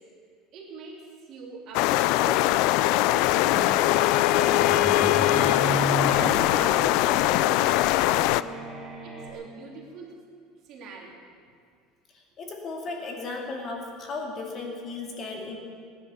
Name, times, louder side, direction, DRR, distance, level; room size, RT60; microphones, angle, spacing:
voice 1, 0.5-5.4 6.0-8.3 9.0-10.1 10.6-11.2, right 4 dB, 40° right, -2 dB, 3.3 m, -43 dB
sound 1, 1.7-8.4, left 16 dB, 55° left, 0.4 m, -22 dB
Bowed string instrument, 2.5-5.6, left 12 dB, 75° left, 1.2 m, -29 dB
sound 2, 3.3-9.3, right 1 dB, 5° right, 2.5 m, -34 dB
voice 2, 12.4-15.6, left 3 dB, 30° left, 0 dB, 2.5 m, -35 dB
18.0 x 11.0 x 7.0 m, 2.2 s
cardioid pair, 170°, 0 cm